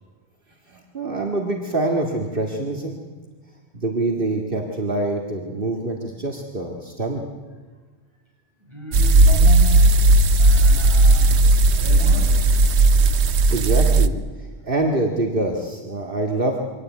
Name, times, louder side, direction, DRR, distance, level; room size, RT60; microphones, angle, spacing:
voice 1, 0.7-3.0 3.7-7.3 13.5-16.6, right 2 dB, 55° right, 1 dB, 2.2 m, -25 dB
voice 2, 8.6-10.0 10.4-11.4 11.7-12.7, left 1 dB, 25° right, -1 dB, 7.6 m, -34 dB
sound 1, 8.9-14.1, right 2 dB, 90° right, 1.2 m, -15 dB
24.5 x 18.0 x 9.3 m, 1.4 s
omnidirectional pair, 1.1 m